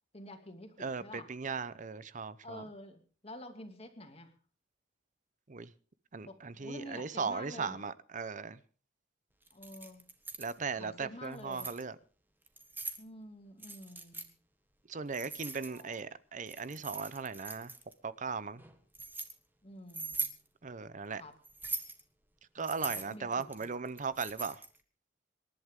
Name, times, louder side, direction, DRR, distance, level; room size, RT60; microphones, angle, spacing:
voice 1, 0.1-1.3 2.4-4.3 6.3-7.8 9.5-10.0 10.8-11.7 13.0-14.3 15.7-16.0 19.6-20.4 21.2-21.3 22.6-23.8, left 1 dB, 35° left, 2.5 m, -49 dB
voice 2, 0.8-2.6 5.5-5.7 6.1-8.6 10.4-12.0 14.9-17.7 18.0-18.6 20.6-21.2 22.5-24.6, right 5 dB, 45° right, 0.7 m, -38 dB
Keys jangling, 9.5-10.5 11.2-11.8 12.5-13.0 13.6-14.3 15.1-16.0 16.5-17.9 18.6-19.3 19.9-20.4 21.4-22.0 22.6-24.8, right 3 dB, 10° right, 1.6 m, -41 dB
26.5 x 11.5 x 3.7 m
head